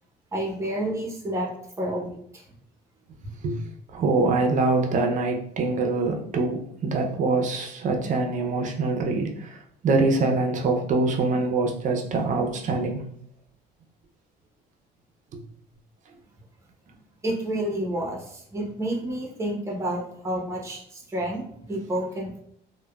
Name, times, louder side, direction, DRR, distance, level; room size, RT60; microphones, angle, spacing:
voice 1, 0.3-1.5 1.8-2.2 17.2-22.4, right 1 dB, 15° right, -1 dB, 0.8 m, -29 dB
voice 2, 3.9-13.0, right 3 dB, 50° right, 3 dB, 0.5 m, -24 dB
3.2 x 2.1 x 2.2 m, 0.69 s
cardioid pair, 110°, 17 cm